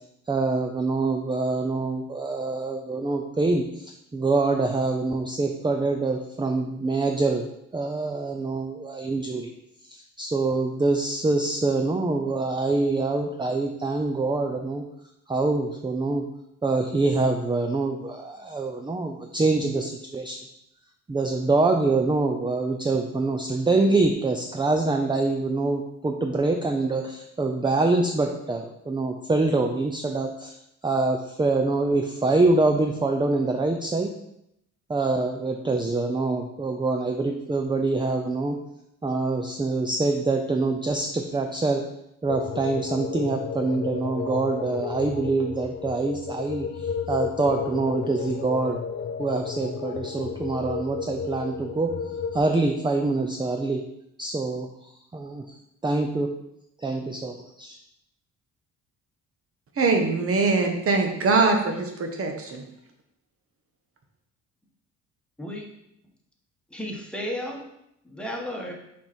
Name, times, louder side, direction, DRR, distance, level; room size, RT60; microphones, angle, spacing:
voice 1, 0.3-7.5 7.7-9.5 9.9-14.8 15.3-16.3 16.6-20.4 21.1-30.5 30.8-34.1 34.9-38.6 39.0-41.9 42.2-48.8 49.2-52.0 52.3-53.8 54.2-54.7 55.1-55.4 55.8-56.3 56.8-57.8, right 3 dB, 15° right, 4 dB, 0.6 m, -25 dB
sound 1, 42.3-52.4, left 6 dB, 40° left, 0.4 m, -33 dB
voice 2, 59.8-62.6, right 3 dB, 50° right, 4 dB, 1.3 m, -22 dB
voice 3, 66.7-67.6 68.0-68.7, equal, 5° left, -1 dB, 1.5 m, -33 dB
5.7 x 4.6 x 4.4 m, 0.79 s
cardioid pair, 90°, 30 cm